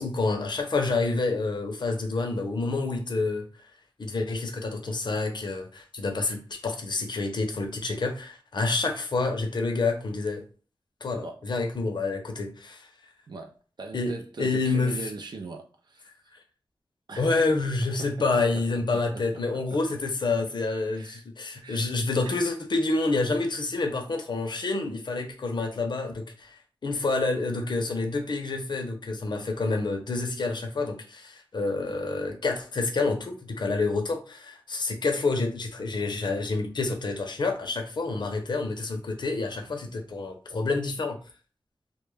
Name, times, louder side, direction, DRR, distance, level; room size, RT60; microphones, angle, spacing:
voice 1, 0.0-3.5 4.0-10.4 11.0-12.9 13.9-15.1 17.2-41.2, left 3 dB, 60° left, 0.6 m, -28 dB
voice 2, 13.3-16.1 17.1-17.3 17.8-18.1 18.9-19.8 20.9-21.2 21.6-21.9 22.2-22.5, right 3 dB, 55° right, 0.3 m, -41 dB
2.2 x 2.0 x 3.2 m
wide cardioid pair, 70°, 9 cm